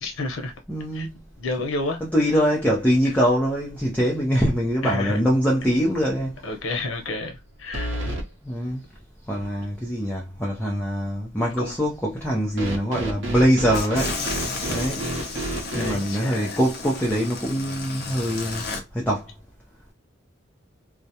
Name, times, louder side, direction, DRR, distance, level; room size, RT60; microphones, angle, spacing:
voice 1, 0.0-0.5 0.9-1.1 1.4-2.0 3.0-3.1 4.8-5.2 6.4-8.0 11.6-11.7 15.7-16.6, left 2 dB, 90° left, 0.8 m, -30 dB
voice 2, 0.7-1.2 2.0-6.4 8.4-8.8 9.3-14.2 14.7-15.1 15.5-18.7 18.9-19.3, equal, 5° left, 0.5 m, -23 dB
sound 1, 4.7-5.1 5.4-5.5 7.7-8.3 12.6-16.0, right 1 dB, 70° right, 0.7 m, -30 dB
sound 2, 13.7-18.8, left 3 dB, 50° left, 0.7 m, -33 dB
2.3 x 2.1 x 2.7 m
head